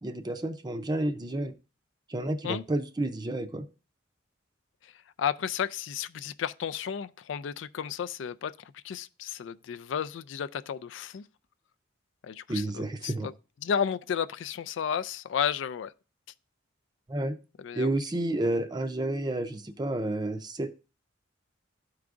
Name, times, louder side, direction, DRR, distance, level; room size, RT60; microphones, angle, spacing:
voice 1, 0.0-1.5 2.1-3.6 12.5-13.3 17.1-17.4 17.7-20.7, right 1 dB, 20° right, 0.5 m, -30 dB
voice 2, 5.2-11.2 12.2-13.3 13.6-15.9 17.6-17.9, left 8 dB, 70° left, 0.3 m, -33 dB
13.0 x 4.7 x 2.5 m
head